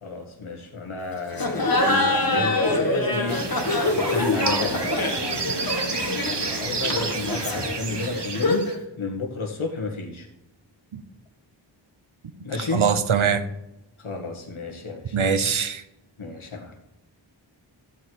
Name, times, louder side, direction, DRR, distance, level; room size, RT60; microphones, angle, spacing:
voice 1, 0.0-3.7 3.9-10.3 12.4-12.9 14.0-15.2 16.2-16.7, left 3 dB, 85° left, 2 dB, 2.0 m, -32 dB
Laughter, 1.3-8.8, left 2 dB, 45° left, 1.9 m, -25 dB
sound 1, 3.3-8.7, right 4 dB, 60° right, 1.3 m, -30 dB
voice 2, 12.7-13.4 15.1-15.8, right 6 dB, 80° right, 11 dB, 1.0 m, -22 dB
14.0 x 4.8 x 8.1 m, 0.91 s
wide cardioid pair, 45°, 48 cm